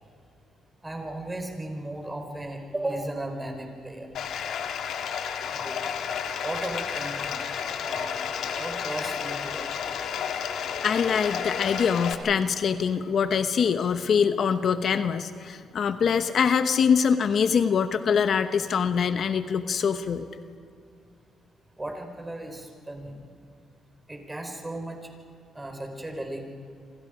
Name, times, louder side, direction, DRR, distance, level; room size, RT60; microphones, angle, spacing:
voice 1, 0.8-4.1 5.5-6.0 6.4-7.4 7.8-8.2 8.5-9.7 21.8-23.3 24.1-25.0 25.5-26.5, right 1 dB, 15° right, 3 dB, 4.4 m, -35 dB
Bathtub (filling or washing), 4.1-12.1, left 7 dB, 75° left, 1.9 m, -31 dB
voice 2, 10.8-20.3, left 6 dB, 55° left, 10 dB, 0.9 m, -24 dB
28.0 x 25.5 x 5.1 m, 2.3 s
cardioid pair, 90°, 0 cm